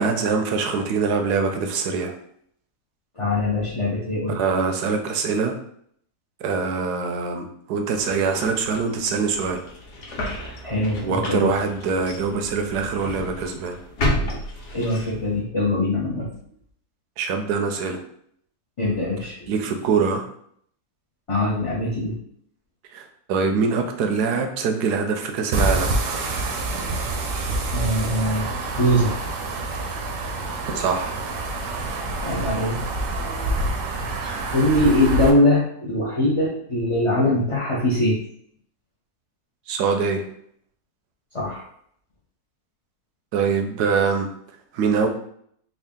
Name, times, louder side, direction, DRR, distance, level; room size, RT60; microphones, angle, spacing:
voice 1, 0.0-2.1 4.3-5.6 6.4-9.6 11.0-13.8 17.2-18.0 19.5-20.2 22.9-25.9 30.7-31.2 39.7-40.2 43.3-44.3 44.7-45.1, right 5 dB, 85° right, 5 dB, 1.2 m, -23 dB
voice 2, 3.2-4.4 10.6-11.5 14.7-16.3 18.8-19.4 21.3-22.2 27.7-29.1 32.2-32.8 34.2-38.2 41.3-41.6, left 1 dB, 35° left, -6 dB, 0.5 m, -22 dB
sound 1, 7.9-15.4, left 1 dB, 90° left, 1.4 m, -32 dB
sound 2, 25.5-35.3, right 2 dB, 65° right, 0.9 m, -27 dB
3.6 x 2.4 x 3.6 m, 0.66 s
omnidirectional pair, 1.7 m